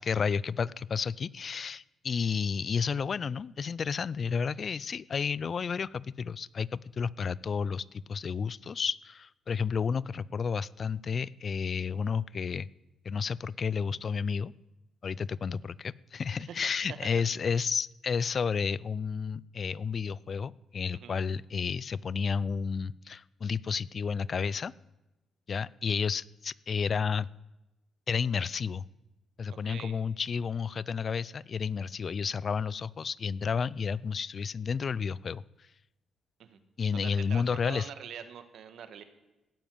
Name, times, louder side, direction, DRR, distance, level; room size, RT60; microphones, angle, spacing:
voice 1, 0.0-12.7 13.0-14.5 15.0-24.7 25.5-27.3 28.1-28.8 29.4-35.4 36.8-37.9, left 6 dB, 45° left, 22 dB, 0.4 m, -31 dB
voice 2, 29.6-29.9 36.4-36.6 36.9-39.0, right 8 dB, 70° right, 11 dB, 1.5 m, -44 dB
16.5 x 7.2 x 9.3 m, 0.99 s
cardioid pair, 90°, 0 cm